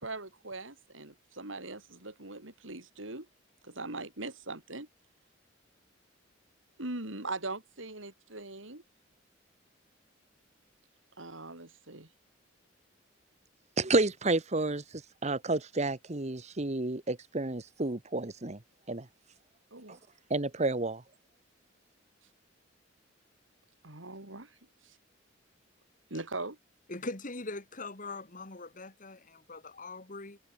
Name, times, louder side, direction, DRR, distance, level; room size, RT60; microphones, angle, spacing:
voice 1, 0.0-3.3 3.6-4.9 6.8-8.8 11.2-12.1 19.7-20.0 23.8-24.6 24.8-25.0 26.1-26.6, right 2 dB, 90° right, 4.7 m, -41 dB
voice 2, 13.8-18.6 18.9-19.1 19.9-20.0 20.3-21.0, right 2 dB, 35° right, 1.3 m, -30 dB
voice 3, 26.9-30.4, left 2 dB, 45° left, 2.6 m, -41 dB
head